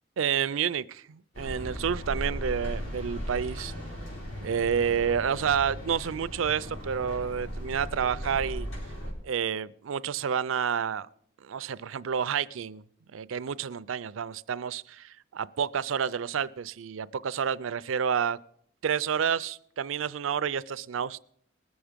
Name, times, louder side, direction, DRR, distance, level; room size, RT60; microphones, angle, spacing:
voice 1, 0.2-3.7 4.4-8.7 9.2-11.1 11.4-12.8 13.1-18.4 18.8-21.2, right 7 dB, 80° right, 17 dB, 0.4 m, -29 dB
sound 1, 1.3-9.1, equal, 80° left, 4.5 m, -37 dB
20.0 x 7.1 x 5.1 m, 0.65 s
head